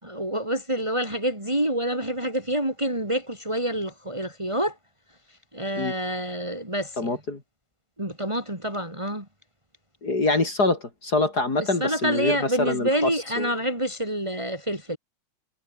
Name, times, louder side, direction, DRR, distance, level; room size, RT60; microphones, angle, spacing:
voice 1, 0.0-4.8 5.5-7.1 8.0-9.3 11.8-15.0, equal, 15° right, 5.9 m, -27 dB
voice 2, 7.0-7.4 10.0-13.5, left 2 dB, 50° left, 4.4 m, -25 dB
omnidirectional pair, 2.2 m